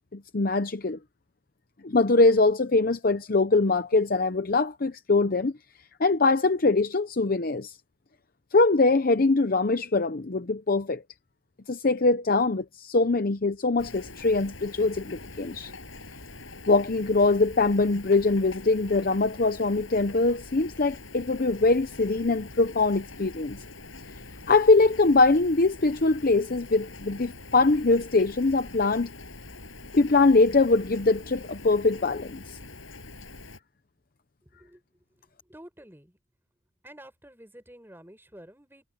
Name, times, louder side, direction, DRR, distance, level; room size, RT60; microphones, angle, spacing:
voice 1, 0.1-1.0 1.8-5.5 6.0-7.8 8.5-11.0 11.7-15.7 16.7-23.6 24.5-29.1 29.9-32.6, left 3 dB, 45° left, 0.7 m, -23 dB
Rain, 13.8-33.6, left 2 dB, 70° left, 7.0 m, -44 dB
voice 2, 34.4-36.2 36.8-38.8, right 1 dB, 10° right, 6.6 m, -50 dB
head